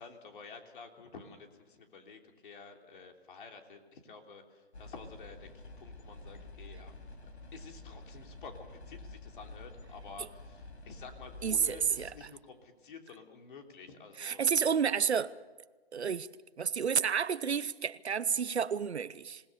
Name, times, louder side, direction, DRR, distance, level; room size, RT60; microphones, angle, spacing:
voice 1, 0.0-6.9 7.5-15.1, left 5 dB, 50° left, 3.4 m, -51 dB
sound 1, 4.7-12.1, left 2 dB, 75° left, 4.1 m, -49 dB
voice 2, 11.4-12.1 14.2-15.3 15.9-16.3 16.6-19.4, right 7 dB, 80° right, 1.0 m, -30 dB
26.5 x 19.5 x 6.9 m
hypercardioid pair, 145°, 32 cm